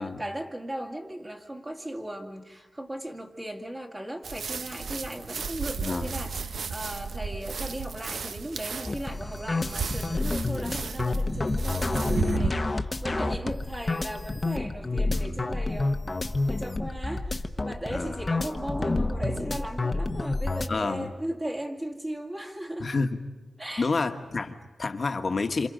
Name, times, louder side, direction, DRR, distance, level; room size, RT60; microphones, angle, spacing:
voice 1, 0.0-22.9 23.6-23.9, right 1 dB, 20° right, 1 dB, 2.2 m, -37 dB
sound 1, 4.2-12.5, right 5 dB, 75° right, 0.8 m, -34 dB
voice 2, 5.8-6.1 12.3-12.6 15.1-15.4 17.9-18.3 20.7-21.1 22.8-23.2 23.8-25.7, left 3 dB, 45° left, 6 dB, 1.4 m, -29 dB
sound 2, 8.8-20.7, left 2 dB, 30° left, 1.0 m, -29 dB
27.5 x 27.0 x 5.2 m, 1.2 s
wide cardioid pair, 95°, 0 cm